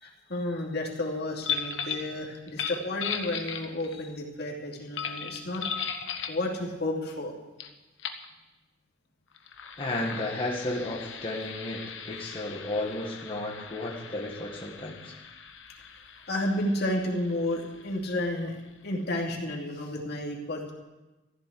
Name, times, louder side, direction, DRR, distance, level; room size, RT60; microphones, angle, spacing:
voice 1, 0.0-5.6 6.3-7.3 16.3-20.7, left 1 dB, 60° left, -1 dB, 2.7 m, -31 dB
sound 1, 1.4-2.1 2.5-4.0 4.9-6.4 7.6-7.7 8.0-8.2 9.3-18.6, left 6 dB, 85° left, 1.2 m, -38 dB
voice 2, 9.8-15.1, left 1 dB, 30° left, -3 dB, 1.7 m, -33 dB
15.0 x 7.6 x 9.9 m, 1.1 s
head